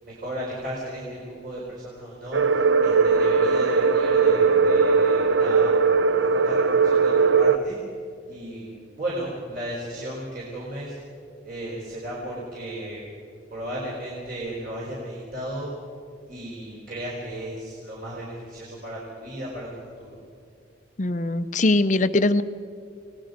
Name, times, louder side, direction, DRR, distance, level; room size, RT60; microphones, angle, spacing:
voice 1, 0.0-5.7 6.1-7.8 8.3-8.7 9.0-11.0 11.4-13.0 13.5-15.7 16.3-19.7 20.0-20.1, right 1 dB, 50° right, -6 dB, 4.6 m, -35 dB
sound 1, 2.3-7.6, right 5 dB, 80° right, 0.8 m, -19 dB
voice 2, 21.0-22.4, left 2 dB, 40° left, 12 dB, 0.7 m, -21 dB
29.0 x 19.0 x 5.2 m, 2.3 s
head